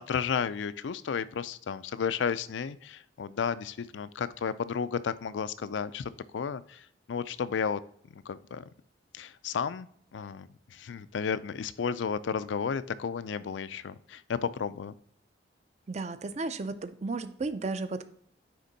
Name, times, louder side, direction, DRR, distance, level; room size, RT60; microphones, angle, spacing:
voice 1, 0.0-7.8 8.1-8.6 9.1-14.9, left 6 dB, 85° left, 15 dB, 0.4 m, -33 dB
voice 2, 15.9-18.1, right 3 dB, 40° right, 11 dB, 0.5 m, -34 dB
9.5 x 3.6 x 4.0 m, 0.65 s
head